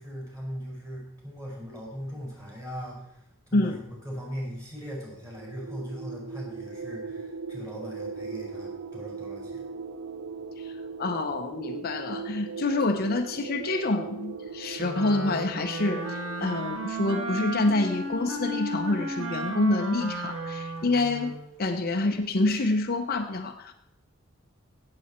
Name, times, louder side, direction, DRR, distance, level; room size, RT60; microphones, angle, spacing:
voice 1, 0.0-9.6, equal, 15° right, -3 dB, 5.5 m, -39 dB
sound 1, 5.1-19.5, right 5 dB, 90° right, 0.8 m, -39 dB
voice 2, 11.0-23.7, left 2 dB, 45° left, 5 dB, 0.7 m, -27 dB
Wind instrument woodwind instrument, 14.8-21.5, right 1 dB, 70° right, 2.1 m, -34 dB
17.0 x 7.8 x 4.3 m, 0.81 s
head